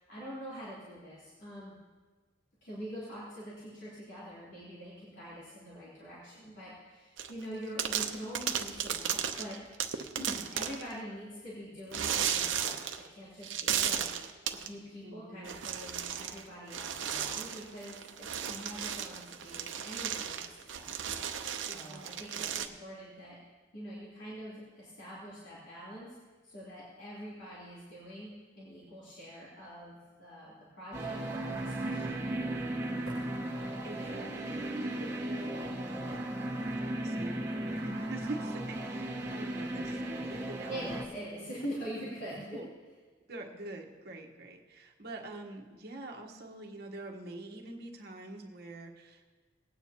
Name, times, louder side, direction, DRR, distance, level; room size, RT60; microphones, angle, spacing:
voice 1, 0.0-1.7 2.6-9.9 10.1-20.4 20.7-23.4 23.7-26.2 26.4-32.2 33.1-33.2 40.7-42.6, equal, 70° left, -10 dB, 3.3 m, -44 dB
sound 1, 7.2-7.4 7.8-10.9 11.9-13.1 13.4-14.7 15.4-16.4 16.7-22.7, right 8 dB, 80° right, 0.7 m, -35 dB
voice 2, 15.0-15.5 21.7-22.6 33.8-36.3 36.6-41.0 41.4-41.5 42.5-42.7 43.3-49.2, right 2 dB, 55° right, 1 dB, 1.3 m, -45 dB
sound 2, 30.9-41.0, right 1 dB, 15° right, 1.5 m, -36 dB
20.0 x 9.1 x 2.9 m, 1.4 s
head